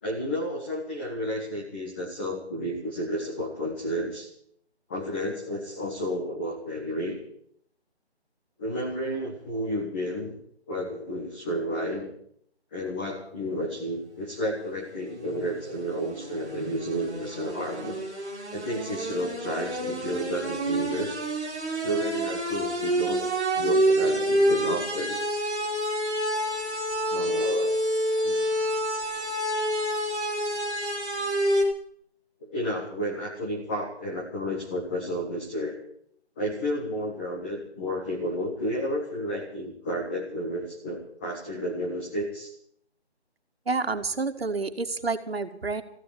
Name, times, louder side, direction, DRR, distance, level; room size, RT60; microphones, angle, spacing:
voice 1, 0.0-4.3 4.9-7.2 8.6-10.4 10.7-12.1 12.7-18.0 18.5-21.2 21.8-23.2 23.5-25.2 27.1-27.7 28.2-28.4 32.4-35.8 36.4-42.5, equal, 10° left, -2 dB, 1.0 m, -31 dB
sound 1, 14.9-31.6, right 1 dB, 5° right, 0.7 m, -28 dB
voice 2, 43.7-45.8, right 4 dB, 65° right, 7 dB, 2.0 m, -29 dB
15.0 x 11.0 x 8.5 m, 0.67 s
figure-of-eight pair, 160°, 33 cm